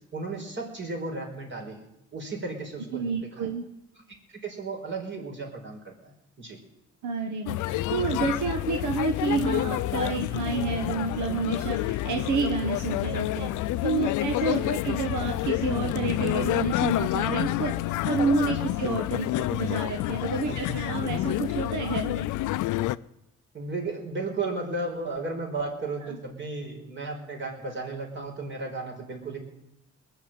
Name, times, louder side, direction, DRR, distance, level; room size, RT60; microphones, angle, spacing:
voice 1, 0.1-1.8 2.1-3.5 4.3-6.1 6.4-6.6 14.5-14.7 18.6-18.7 20.4-21.1 23.5-29.4, right 3 dB, 40° right, 0 dB, 5.2 m, -34 dB
voice 2, 2.9-3.6 7.0-13.5 13.8-22.3, right 4 dB, 75° right, 5 dB, 1.4 m, -29 dB
sound 1, 7.5-23.0, left 16 dB, 85° left, 0.5 m, -28 dB
sound 2, 10.4-14.8, left 1 dB, 5° right, 2.4 m, -46 dB
20.5 x 7.0 x 9.0 m, 0.87 s
cardioid pair, 90°, 30 cm